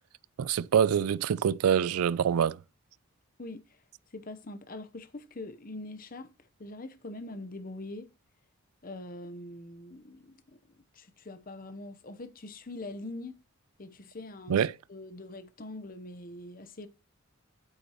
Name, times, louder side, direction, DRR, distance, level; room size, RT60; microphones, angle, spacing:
voice 1, 0.4-2.6 14.5-14.7, right 8 dB, 85° right, 0.4 m, -25 dB
voice 2, 3.4-3.8 4.1-8.1 8.8-13.3 13.8-16.9, left 2 dB, 40° left, 0.8 m, -43 dB
9.3 x 8.7 x 3.0 m
head